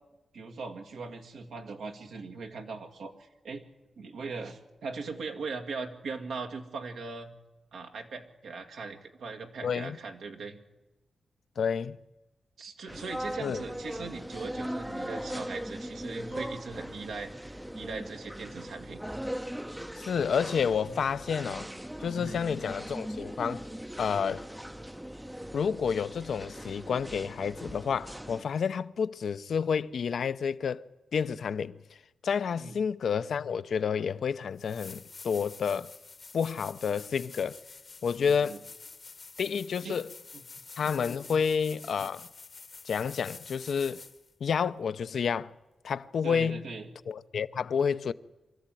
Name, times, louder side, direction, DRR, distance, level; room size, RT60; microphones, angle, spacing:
voice 1, 0.3-3.6 4.0-7.3 7.7-10.6 12.6-19.0 20.9-21.0 22.2-22.4 32.6-32.7 38.2-38.6 39.8-40.0 40.3-40.4 46.2-46.9, right 4 dB, 85° right, 2.0 m, -40 dB
voice 2, 9.6-10.0 11.6-12.0 13.4-13.6 20.0-21.7 22.0-23.6 24.0-24.4 25.5-30.8 31.1-31.8 32.2-35.9 36.3-37.6 38.0-38.6 39.4-40.1 40.8-42.3 42.8-44.0 44.4-45.5 45.8-46.7 47.1-48.1, left 6 dB, 70° left, 0.6 m, -30 dB
sound 1, 12.9-28.4, equal, 5° right, 0.6 m, -39 dB
sound 2, 34.1-34.2 34.6-44.3 47.1-47.2, left 4 dB, 45° left, 1.0 m, -48 dB
24.0 x 13.5 x 9.1 m
cardioid pair, 70°, 0 cm